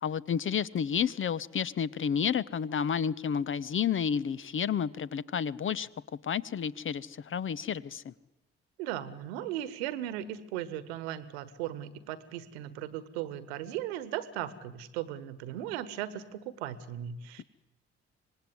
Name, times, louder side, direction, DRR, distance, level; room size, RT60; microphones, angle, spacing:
voice 1, 0.0-5.9 6.2-8.1, left 7 dB, 40° left, 18 dB, 0.9 m, -31 dB
voice 2, 8.8-17.4, right 12 dB, 75° right, 16 dB, 1.4 m, -37 dB
25.5 x 19.5 x 9.5 m, 0.94 s
figure-of-eight pair, 45°, 33 cm